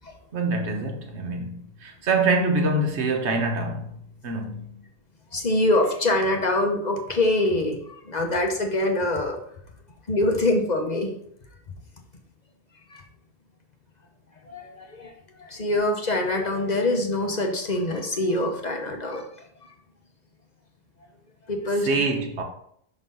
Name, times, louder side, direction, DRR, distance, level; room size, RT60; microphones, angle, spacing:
voice 1, 0.3-4.7 21.8-22.4, right 3 dB, 60° right, 1.4 m, -25 dB
voice 2, 5.3-7.8 8.0-9.4 10.1-11.1 12.9-13.0 14.5-15.1 15.4-19.4 21.5-22.0, left 2 dB, 35° left, 0.9 m, -24 dB
6.1 x 4.0 x 5.4 m
omnidirectional pair, 1.3 m